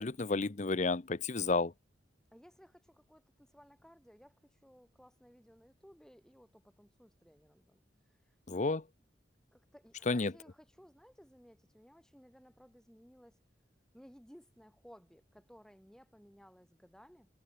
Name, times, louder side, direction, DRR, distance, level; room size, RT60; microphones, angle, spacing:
voice 1, 0.0-1.7 8.5-8.8 10.1-10.3, left 3 dB, 40° left, 0.7 m, -31 dB
voice 2, 2.3-7.8 8.5-8.7 9.5-13.4 13.9-17.3, equal, 5° left, 6.4 m, -59 dB
head